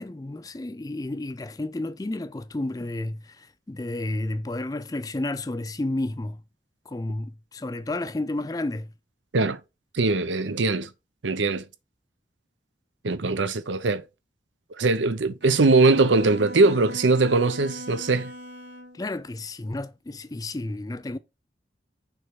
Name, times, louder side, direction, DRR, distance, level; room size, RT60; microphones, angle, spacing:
voice 1, 0.0-6.4 6.9-8.9 18.9-21.2, left 2 dB, 20° left, 0.4 m, -31 dB
voice 2, 9.9-10.9 11.2-11.6 13.0-14.0 14.8-18.3, right 3 dB, 90° right, 0.7 m, -21 dB
Bowed string instrument, 15.4-19.0, equal, 65° right, 1.9 m, -39 dB
6.2 x 3.2 x 5.7 m
head